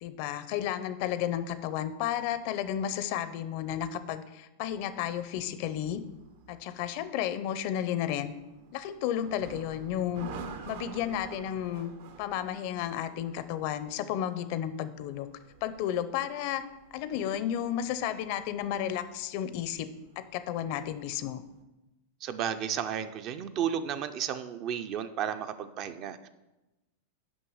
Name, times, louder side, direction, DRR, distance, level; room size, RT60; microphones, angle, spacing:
voice 1, 0.0-6.0 6.5-8.3 8.7-10.3 10.7-11.9 12.2-15.3 15.6-16.6 16.9-19.9 20.2-21.4, left 10 dB, 50° left, 13 dB, 0.5 m, -32 dB
sound 1, 4.7-21.6, right 5 dB, 65° right, 0.9 m, -50 dB
voice 2, 22.2-26.3, right 9 dB, 40° right, 10 dB, 0.5 m, -33 dB
6.2 x 5.4 x 6.3 m, 1.0 s
supercardioid pair, 145°, 0 cm